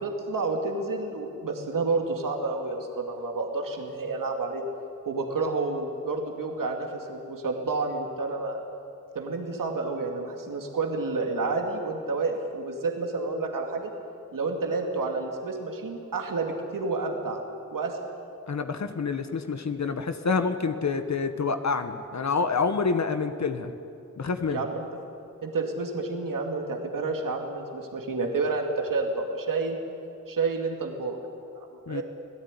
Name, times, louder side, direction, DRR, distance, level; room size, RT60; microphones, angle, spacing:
voice 1, 0.0-4.6 5.1-8.6 9.1-13.9 14.3-17.4 17.7-18.0 24.5-24.9 25.4-29.8 30.3-31.2 31.5-32.0, right 3 dB, 85° right, 2 dB, 2.7 m, -30 dB
voice 2, 18.5-23.7 24.2-24.7 31.9-32.0, left 4 dB, 60° left, 8 dB, 1.5 m, -27 dB
26.5 x 17.5 x 9.9 m, 2.7 s
wide cardioid pair, 80°, 32 cm